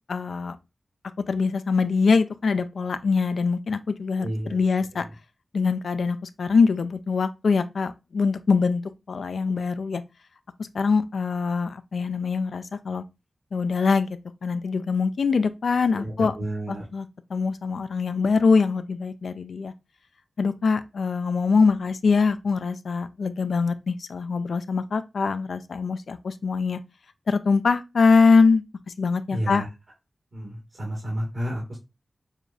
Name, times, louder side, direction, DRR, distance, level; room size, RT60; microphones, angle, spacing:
voice 1, 0.1-0.6 1.3-5.1 5.5-8.8 9.1-10.0 10.7-13.0 13.5-16.3 16.9-17.1 17.3-19.7 20.4-26.8 27.3-28.6 29.0-29.6, left 4 dB, 90° left, 0.4 m, -23 dB
voice 2, 4.2-4.6 4.9-5.1 15.9-16.8 29.3-29.7 30.3-31.8, right 1 dB, 70° right, 1.8 m, -31 dB
6.5 x 2.4 x 2.5 m
wide cardioid pair, 115°, 0 cm